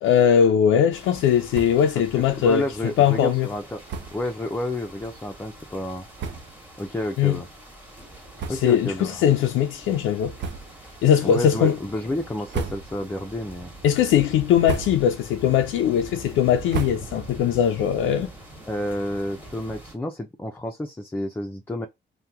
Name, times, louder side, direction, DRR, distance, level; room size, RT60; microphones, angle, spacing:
voice 1, 0.0-2.7 3.0-3.5 7.2-7.4 8.5-10.3 11.0-11.7 13.8-18.3, left 9 dB, 90° left, 0.5 m, -20 dB
sound 1, 0.9-20.0, right 1 dB, 10° right, 1.3 m, -43 dB
sound 2, 1.5-2.0 2.3-2.4 2.7-2.8 3.8-4.3 5.0-5.1 5.8-5.9 6.1-6.7 7.2-7.4 8.3-9.0 9.3-9.5 10.3-10.9 11.4-11.8 12.3-13.2 13.6-14.0 14.4-15.3 15.6-17.5, right 5 dB, 65° right, 0.6 m, -34 dB
voice 2, 2.0-3.8 4.1-6.1 6.8-7.5 8.5-9.2 11.2-13.7 18.7-21.9, left 1 dB, 10° left, 0.5 m, -30 dB
2.8 x 2.2 x 3.4 m
cardioid pair, 90°, 20 cm